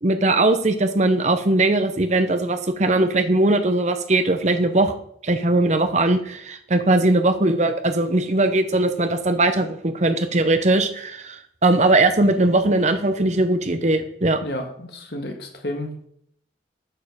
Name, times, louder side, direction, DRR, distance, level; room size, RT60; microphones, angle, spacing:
voice 1, 0.0-4.9 5.2-14.4, right 2 dB, 40° right, 8 dB, 0.8 m, -20 dB
voice 2, 14.4-15.9, left 1 dB, 65° left, 4 dB, 1.6 m, -31 dB
8.6 x 5.5 x 6.4 m, 0.69 s
head